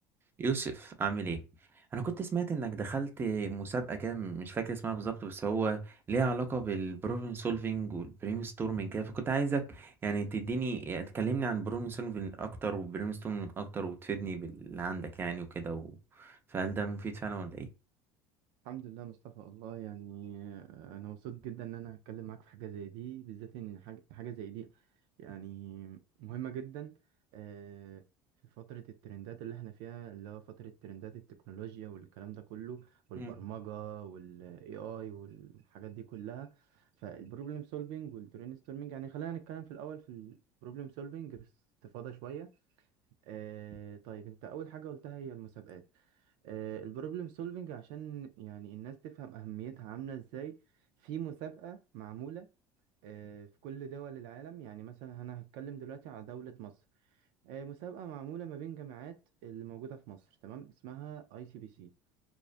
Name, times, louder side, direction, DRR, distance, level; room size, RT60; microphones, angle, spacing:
voice 1, 0.4-1.4 1.8-17.7 33.2-33.3, right 5 dB, 25° right, 0.6 m, -34 dB
voice 2, 18.6-24.7 25.2-26.9 27.3-28.0 28.6-41.5 41.8-42.5 43.2-46.0 46.4-50.6 51.0-52.5 53.0-56.7 57.4-61.9, right 10 dB, 75° right, 0.4 m, -43 dB
2.4 x 2.1 x 2.4 m
supercardioid pair, 110°, 9 cm